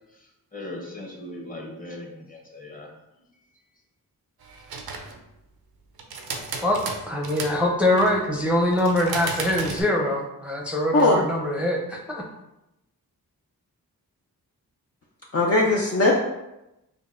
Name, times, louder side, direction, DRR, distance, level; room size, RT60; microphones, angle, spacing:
voice 1, 0.5-2.9, left 1 dB, 25° left, 0 dB, 1.1 m, -38 dB
sound 1, 4.4-5.2 6.0-7.6 7.9-8.3 8.7-9.8, right 4 dB, 80° right, 0.6 m, -34 dB
voice 2, 6.6-12.2, left 1 dB, 5° right, -2 dB, 0.7 m, -23 dB
voice 3, 15.3-16.2, left 2 dB, 40° left, -2 dB, 0.6 m, -19 dB
5.1 x 2.3 x 2.5 m, 0.91 s
cardioid pair, 45°, 37 cm